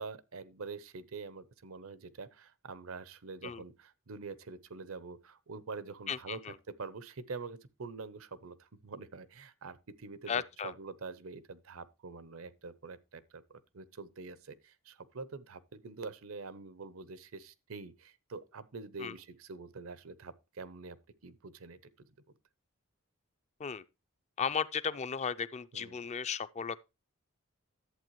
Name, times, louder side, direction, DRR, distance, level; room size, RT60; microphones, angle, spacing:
voice 1, 0.0-6.4 6.7-21.0 21.2-22.1 25.7-26.0, right 4 dB, 80° right, 0.8 m, -45 dB
voice 2, 6.1-6.5 10.3-10.7 19.0-19.1 23.6-23.8 24.4-26.8, left 6 dB, 35° left, 0.4 m, -35 dB
11.5 x 8.0 x 3.0 m
head